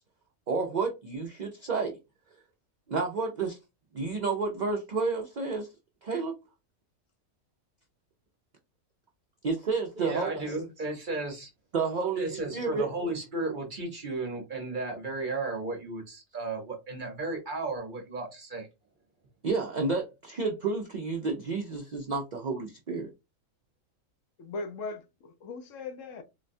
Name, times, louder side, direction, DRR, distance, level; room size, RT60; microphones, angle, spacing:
voice 1, 0.5-1.9 2.9-3.6 3.9-5.7 6.0-6.3 9.4-10.6 11.7-12.9 19.4-23.1, right 4 dB, 65° right, 0.4 m, -30 dB
voice 2, 10.0-11.5 12.2-18.7, right 3 dB, 45° right, 0.9 m, -34 dB
voice 3, 24.4-26.2, left 3 dB, 70° left, 0.9 m, -39 dB
3.9 x 2.2 x 2.6 m
omnidirectional pair, 1.4 m